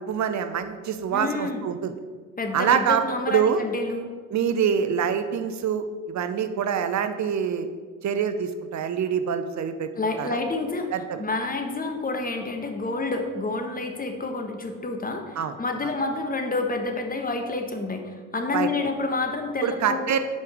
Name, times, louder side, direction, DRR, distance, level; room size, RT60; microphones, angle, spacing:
voice 1, 0.0-1.9 2.5-3.0 3.3-3.6 4.3-7.7 8.0-9.9 10.2-10.4 10.9-11.2 15.4-15.5 15.8-15.9 18.5-18.9 19.6-20.2, right 8 dB, 50° right, 9 dB, 0.7 m, -25 dB
voice 2, 1.1-1.6 2.4-4.1 10.0-10.9 11.2-20.1, left 3 dB, 25° left, 4 dB, 1.2 m, -29 dB
5.3 x 5.0 x 6.2 m, 1.5 s
hypercardioid pair, 50°, 37 cm